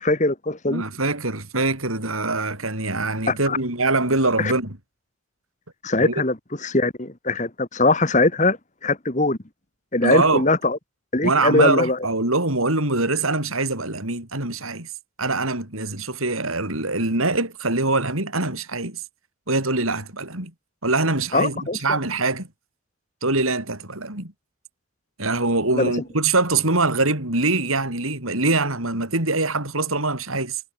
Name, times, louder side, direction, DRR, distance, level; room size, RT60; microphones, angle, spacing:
voice 1, 0.0-0.8 3.3-3.6 4.4-4.5 5.8-8.6 8.8-9.4 9.9-10.8 11.1-12.0 21.3-22.0 25.7-25.9, left 2 dB, 35° left, 1.9 m, -21 dB
voice 2, 0.7-4.8 6.0-6.1 10.0-10.5 11.2-14.9 15.2-19.0 19.5-20.5 20.8-22.5 23.2-24.3 25.2-30.6, right 2 dB, 80° right, 6.9 m, -23 dB
head